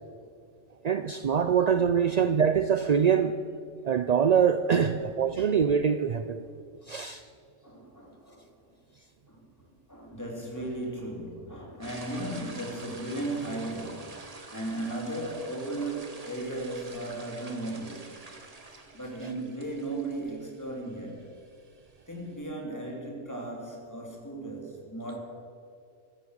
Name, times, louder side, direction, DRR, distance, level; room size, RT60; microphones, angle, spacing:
voice 1, 0.8-3.4 3.8-6.4 6.9-7.2 19.2-19.3, right 7 dB, 60° right, 10 dB, 0.4 m, -24 dB
voice 2, 7.6-8.5 9.3-9.4 9.9-14.1 14.5-18.2 18.9-21.3 22.1-25.2, right 2 dB, 15° left, 0 dB, 2.8 m, -36 dB
sound 1, 11.8-22.4, right 3 dB, 30° right, 1.3 m, -48 dB
15.0 x 13.5 x 6.4 m, 2.3 s
omnidirectional pair, 1.3 m